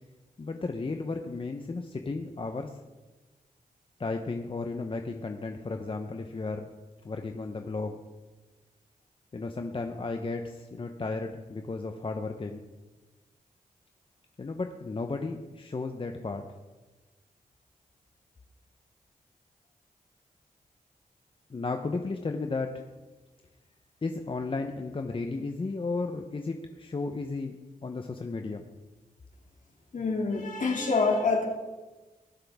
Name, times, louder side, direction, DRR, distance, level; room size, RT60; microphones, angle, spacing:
voice 1, 0.4-2.7 4.0-6.7 7.0-8.0 9.3-12.6 14.4-16.5 21.5-22.8 24.0-28.6, left 3 dB, 35° left, 5 dB, 0.8 m, -34 dB
voice 2, 29.9-31.5, left 4 dB, 60° left, 1 dB, 2.4 m, -26 dB
20.0 x 7.6 x 3.6 m, 1.2 s
cardioid pair, 65°, 15 cm